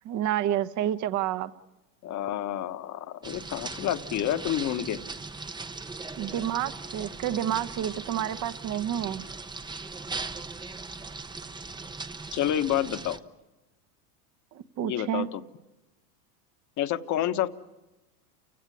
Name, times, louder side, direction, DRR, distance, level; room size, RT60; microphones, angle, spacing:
voice 1, 0.0-1.5 6.2-9.2 14.5-15.3, right 11 dB, 40° right, 12 dB, 1.0 m, -29 dB
voice 2, 2.0-5.0 12.3-13.2 14.8-15.4 16.8-17.5, left 11 dB, 35° left, 11 dB, 1.3 m, -29 dB
sound 1, 3.2-13.2, right 3 dB, 10° right, 0.8 m, -39 dB
29.0 x 16.5 x 9.7 m, 1.1 s
supercardioid pair, 115°, 48 cm